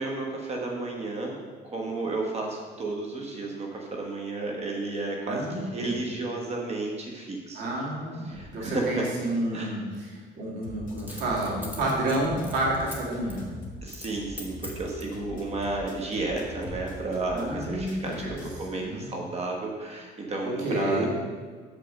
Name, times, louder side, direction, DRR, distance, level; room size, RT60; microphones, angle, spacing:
voice 1, 0.0-1.4 1.6-7.7 8.2-9.1 9.5-9.7 13.8-21.1, right 2 dB, 40° right, 0 dB, 1.3 m, -32 dB
voice 2, 5.3-6.0 7.5-13.4 17.3-18.0 18.3-18.4 18.7-19.1 20.4-21.1, right 1 dB, 85° right, -3 dB, 2.1 m, -30 dB
Coin (dropping), 8.3-8.5 11.0-13.0 13.3-13.5 13.9-14.1 14.4-15.2 15.8-16.4 16.7-16.8, left 1 dB, 10° right, 1.5 m, -42 dB
sound 1, 10.6-18.6, left 2 dB, 55° left, 1.5 m, -43 dB
6.8 x 5.2 x 6.1 m, 1.5 s
cardioid pair, 110°, 17 cm